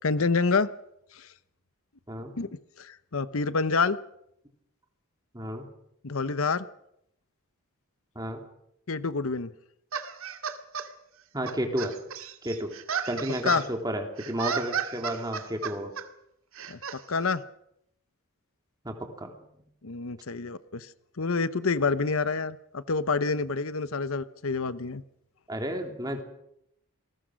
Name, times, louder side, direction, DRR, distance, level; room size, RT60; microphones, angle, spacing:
voice 1, 0.0-0.7 1.1-1.3 2.4-2.5 2.8-4.0 6.0-6.6 8.9-9.5 13.4-13.6 16.7-16.8 17.1-17.4 19.8-20.9 21.2-25.0, left 4 dB, 70° left, 15 dB, 0.8 m, -27 dB
voice 2, 5.3-5.6 8.1-8.4 11.3-11.9 12.4-12.7 13.1-15.9 18.8-19.3 25.5-26.2, right 1 dB, 15° right, 4 dB, 3.0 m, -32 dB
sound 1, 9.9-10.9 11.5-13.7 14.2-16.0 16.5-17.0, right 6 dB, 70° right, 2.0 m, -33 dB
28.0 x 20.0 x 6.4 m, 0.78 s
head